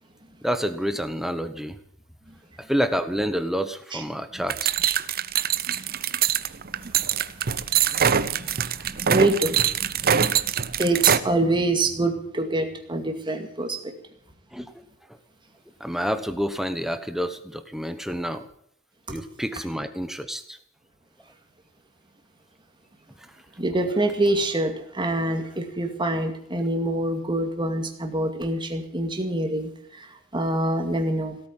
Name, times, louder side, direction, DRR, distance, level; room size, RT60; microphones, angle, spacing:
voice 1, 0.4-1.8 2.6-4.7 14.5-14.7 15.8-18.5 19.1-20.6, equal, ahead, 9 dB, 1.1 m, -28 dB
sound 1, 4.5-11.2, right 8 dB, 45° right, 0.7 m, -23 dB
voice 2, 7.9-10.5 10.8-13.9 19.1-19.2 23.6-31.4, right 1 dB, 20° right, 4 dB, 2.2 m, -26 dB
17.5 x 8.6 x 9.1 m, 0.69 s
head